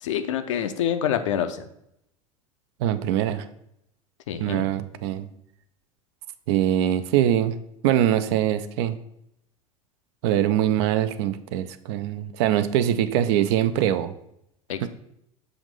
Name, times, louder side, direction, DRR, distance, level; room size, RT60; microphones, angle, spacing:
voice 1, 0.0-1.6 4.3-4.7 14.7-14.9, left 9 dB, 60° left, 8 dB, 0.6 m, -26 dB
voice 2, 2.8-3.5 4.4-5.3 6.5-7.6 7.8-9.0 10.2-14.1 14.8-14.9, right 11 dB, 50° right, 12 dB, 0.4 m, -23 dB
7.0 x 2.6 x 5.1 m, 0.78 s
figure-of-eight pair, 80°, 18 cm